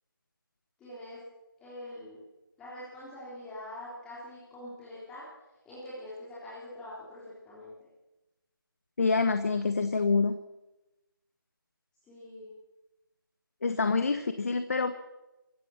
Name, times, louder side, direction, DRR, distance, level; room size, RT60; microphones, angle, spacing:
voice 1, 0.8-1.2 1.6-2.2 2.6-5.3 5.6-7.9 12.0-12.5, left 1 dB, 5° left, -9 dB, 3.6 m, -44 dB
voice 2, 9.0-10.4 13.6-14.9, left 4 dB, 40° left, 10 dB, 1.2 m, -26 dB
26.0 x 15.5 x 7.3 m, 1.0 s
figure-of-eight pair, 165°, 12 cm